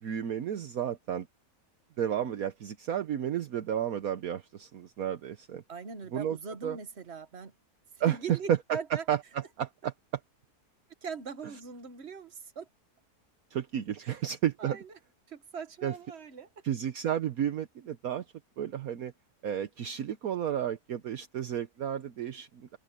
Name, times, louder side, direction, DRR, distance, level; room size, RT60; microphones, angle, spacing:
voice 1, 0.0-1.3 2.0-5.6 6.1-6.4 6.6-6.8 8.0-8.8 9.1-9.9 13.5-14.8 15.8-15.9 16.6-18.2 18.6-19.1 19.4-22.8, right 10 dB, 65° right, 1.3 m, -32 dB
voice 2, 5.7-7.5 8.0-9.0 11.0-12.7 14.0-14.2 14.6-14.9 15.3-16.5, right 5 dB, 45° right, 1.7 m, -41 dB
omnidirectional pair, 1.7 m